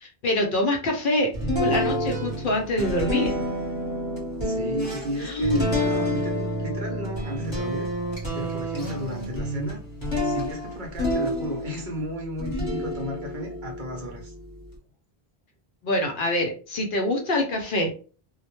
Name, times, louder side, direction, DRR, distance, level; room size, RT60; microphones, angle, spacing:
voice 1, 0.0-1.3 1.6-3.3 5.2-5.7 15.8-17.9, left 1 dB, 60° left, 0.7 m, -25 dB
sound 1, 1.3-11.9 12.4-14.7, equal, 30° left, 1.0 m, -28 dB
voice 2, 4.4-7.9 8.3-9.8 10.2-14.3, equal, 55° right, 0.7 m, -34 dB
2.1 x 2.1 x 2.9 m
omnidirectional pair, 1.1 m